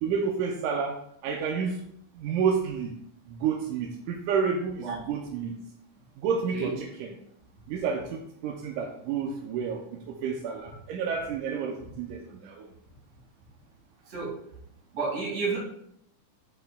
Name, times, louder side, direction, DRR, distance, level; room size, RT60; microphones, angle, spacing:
voice 1, 0.0-1.8 2.2-2.9 3.3-5.6 6.2-7.2 7.7-12.7, right 6 dB, 80° right, 1 dB, 2.0 m, -30 dB
voice 2, 14.1-14.4 14.9-15.6, right 4 dB, 55° right, -4 dB, 3.2 m, -31 dB
11.5 x 4.4 x 2.3 m, 0.71 s
omnidirectional pair, 3.9 m